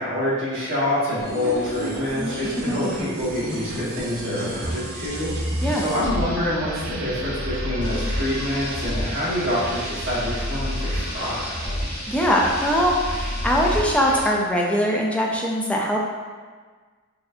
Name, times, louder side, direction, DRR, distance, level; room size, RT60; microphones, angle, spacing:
voice 1, 0.0-5.3 5.7-11.6, left 1 dB, 60° right, -9 dB, 1.2 m, -26 dB
sound 1, 1.2-14.4, equal, 80° right, 0.9 m, -30 dB
sound 2, 7.8-13.8, left 2 dB, 75° left, 0.8 m, -38 dB
voice 2, 12.1-16.0, equal, 5° left, -2 dB, 0.3 m, -22 dB
4.8 x 2.6 x 2.5 m, 1.5 s
head